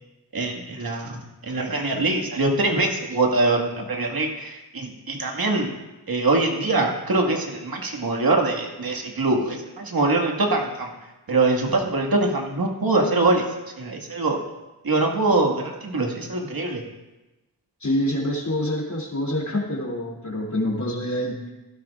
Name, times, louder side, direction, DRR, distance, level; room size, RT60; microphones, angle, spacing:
voice 1, 0.3-5.7 6.1-10.9 11.3-14.4 14.8-16.8, right 2 dB, 60° right, 1 dB, 2.0 m, -23 dB
voice 2, 17.8-21.5, left 1 dB, 45° left, -1 dB, 2.9 m, -26 dB
15.5 x 12.5 x 2.5 m, 1.0 s
cardioid pair, 60°, 41 cm